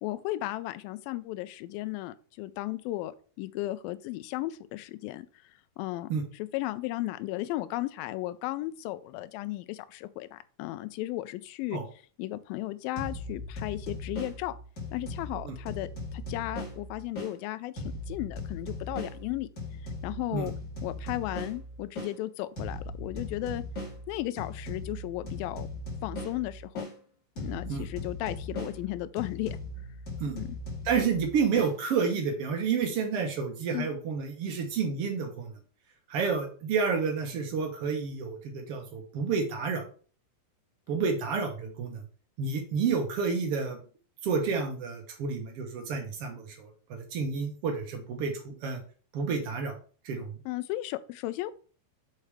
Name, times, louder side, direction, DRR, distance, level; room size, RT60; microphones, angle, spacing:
voice 1, 0.0-5.3 5.8-11.8 12.2-14.5 14.9-19.5 20.0-20.5 20.8-23.6 24.1-25.7 26.0-26.8 27.4-29.6 30.3-30.6 33.7-33.9 50.5-51.5, left 16 dB, 80° left, 2.2 m, -35 dB
sound 1, 13.0-17.3 17.8-22.1 22.6-26.9 27.4-31.7, left 1 dB, 20° left, 2.4 m, -39 dB
voice 2, 30.8-35.5 36.1-39.8 40.9-42.0 42.4-43.8 44.2-48.8 49.1-49.7 50.0-50.3, right 5 dB, 80° right, 1.3 m, -30 dB
6.6 x 4.3 x 4.8 m
omnidirectional pair, 4.3 m